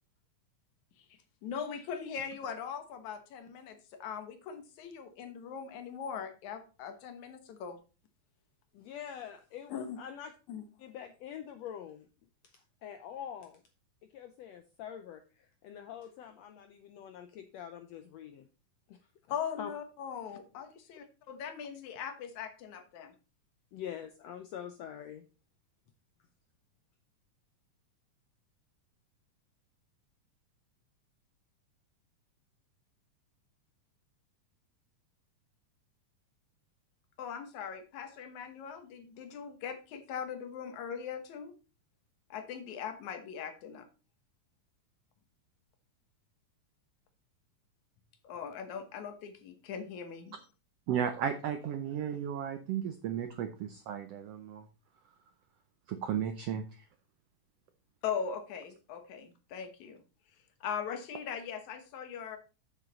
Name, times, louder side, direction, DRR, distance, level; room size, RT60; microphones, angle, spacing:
voice 1, 1.4-7.8 9.7-10.0 10.5-10.6 19.3-23.1 37.2-41.5 42.3-43.9 48.2-50.4 58.0-60.0 60.6-62.4, left 7 dB, 65° left, 7 dB, 2.5 m, -40 dB
voice 2, 8.7-10.3 10.8-12.1 12.4-13.6 14.1-18.5 18.9-19.0 19.3-19.7 23.7-25.3, left 9 dB, 80° left, 8 dB, 1.5 m, -45 dB
voice 3, 50.9-54.7 55.9-56.8, right 8 dB, 80° right, 8 dB, 1.4 m, -34 dB
8.1 x 7.3 x 4.1 m, 0.33 s
omnidirectional pair, 3.8 m